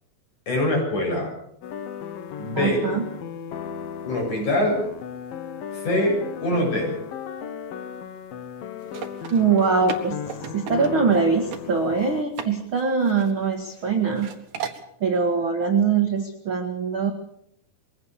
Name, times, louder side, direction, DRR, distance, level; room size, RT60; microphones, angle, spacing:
voice 1, 0.5-1.3 2.4-2.8 4.0-4.8 5.7-6.2 6.4-7.0, left 1 dB, 50° left, -1 dB, 9.4 m, -23 dB
sound 1, 1.6-12.2, left 8 dB, 70° left, 2.9 m, -36 dB
voice 2, 2.6-3.0 9.3-10.2 10.5-14.3 15.0-17.1, right 5 dB, 45° right, 4 dB, 1.7 m, -22 dB
sound 2, 8.8-11.2 11.5-11.6 12.0-12.5 12.8-13.8 14.2-14.8, right 8 dB, 60° right, 2.9 m, -35 dB
22.5 x 17.5 x 6.9 m, 0.71 s
omnidirectional pair, 4.6 m